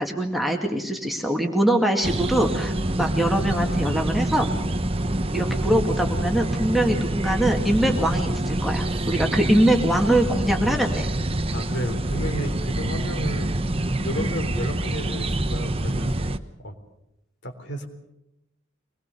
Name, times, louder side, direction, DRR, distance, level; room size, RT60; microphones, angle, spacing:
voice 1, 0.0-4.5 5.3-11.1 14.2-14.3, right 1 dB, ahead, 2 dB, 2.2 m, -23 dB
sound 1, 2.0-16.4, right 1 dB, 25° right, 1.1 m, -26 dB
voice 2, 11.5-13.6 13.9-16.2 16.6-16.8 17.4-17.9, equal, 55° left, 6 dB, 3.7 m, -32 dB
25.0 x 21.0 x 6.9 m, 0.88 s
head